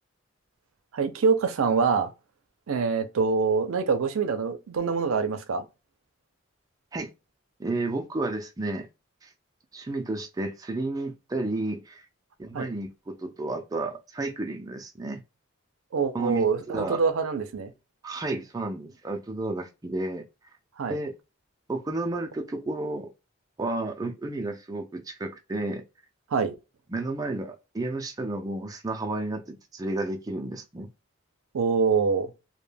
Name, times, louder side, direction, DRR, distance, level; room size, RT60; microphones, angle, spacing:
voice 1, 0.9-2.1 2.7-5.6 12.5-12.7 15.9-17.7 20.8-21.0 26.3-26.6 31.5-32.3, right 5 dB, 85° right, 0.5 m, -25 dB
voice 2, 7.6-8.9 9.2-9.3 9.7-12.1 12.4-15.2 16.1-17.0 18.0-20.2 20.9-21.2 21.7-23.1 23.6-25.8 26.9-30.9, right 2 dB, 15° right, 0.3 m, -32 dB
2.1 x 2.1 x 3.2 m
head